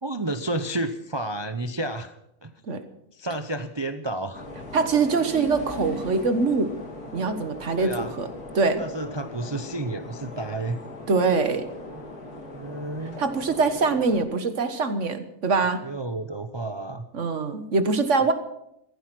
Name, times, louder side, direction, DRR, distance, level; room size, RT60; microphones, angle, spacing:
voice 1, 0.0-2.5 3.1-4.5 7.8-8.1 8.8-10.8 12.5-13.2 15.8-17.1, right 2 dB, 30° right, 9 dB, 0.5 m, -31 dB
sound 1, 4.3-14.2, left 2 dB, 90° left, 3.2 m, -39 dB
voice 2, 4.7-6.7 7.1-8.3 8.5-8.8 11.1-11.7 13.2-15.8 17.1-18.3, right 4 dB, 55° right, 10 dB, 1.6 m, -23 dB
16.0 x 14.5 x 6.1 m, 0.80 s
omnidirectional pair, 1.6 m